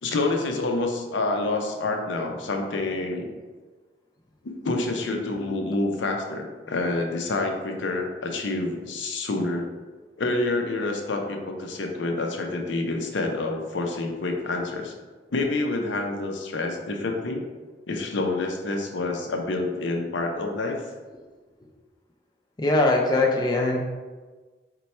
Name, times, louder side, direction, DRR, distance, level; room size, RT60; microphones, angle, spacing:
voice 1, 0.0-3.3 4.4-9.7 10.2-14.9 15.3-17.4 17.9-20.8, left 2 dB, 85° left, 3 dB, 0.6 m, -28 dB
voice 2, 22.6-23.8, left 2 dB, 20° left, 0 dB, 0.5 m, -21 dB
4.2 x 2.2 x 4.2 m, 1.3 s
head